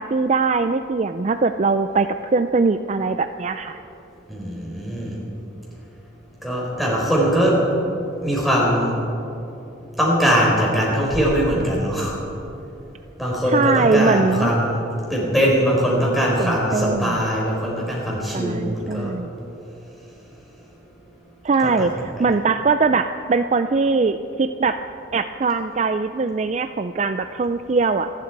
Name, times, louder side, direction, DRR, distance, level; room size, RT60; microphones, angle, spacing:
voice 1, 0.0-3.8 13.5-14.5 16.4-17.2 18.3-19.3 21.4-24.8 25.1-28.1, right 4 dB, 35° right, 9 dB, 0.4 m, -21 dB
voice 2, 4.3-5.2 6.4-7.6 8.2-8.9 10.0-12.2 13.2-14.8 15.1-19.1 21.6-21.9, equal, ahead, -4 dB, 4.3 m, -21 dB
27.0 x 11.5 x 4.7 m, 2.9 s
head